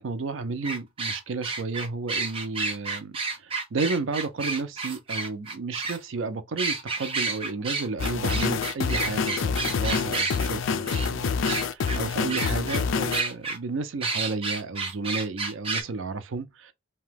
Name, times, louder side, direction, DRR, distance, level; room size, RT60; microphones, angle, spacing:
voice 1, 0.0-16.7, right 4 dB, 80° right, 0.5 m, -32 dB
sound 1, 0.6-6.0 6.6-10.4 10.9-11.1 11.4-12.0 12.3-12.8 13.1-13.6 14.0-15.8, right 4 dB, 30° right, 0.7 m, -30 dB
sound 2, 8.0-13.2, left 5 dB, 75° left, 0.4 m, -27 dB
2.8 x 2.2 x 3.3 m
head